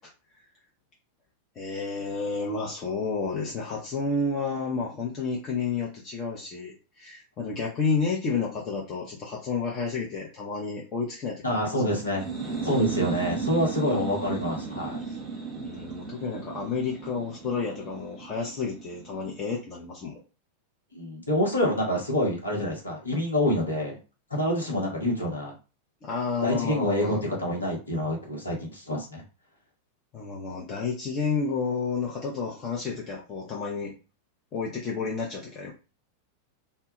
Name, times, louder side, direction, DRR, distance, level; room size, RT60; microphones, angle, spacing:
voice 1, 1.6-11.8 15.1-15.2 15.6-20.2 26.0-27.2 30.1-33.9 34.5-35.7, left 4 dB, 30° left, -3 dB, 0.6 m, -31 dB
voice 2, 11.4-12.2 12.6-15.0 20.9-24.0 24.3-25.5 26.4-29.2, equal, 75° left, 0 dB, 0.9 m, -27 dB
sound 1, 12.0-19.6, right 4 dB, 30° right, 0.8 m, -35 dB
2.1 x 2.1 x 2.9 m, 0.32 s
figure-of-eight pair, 90°, 0 cm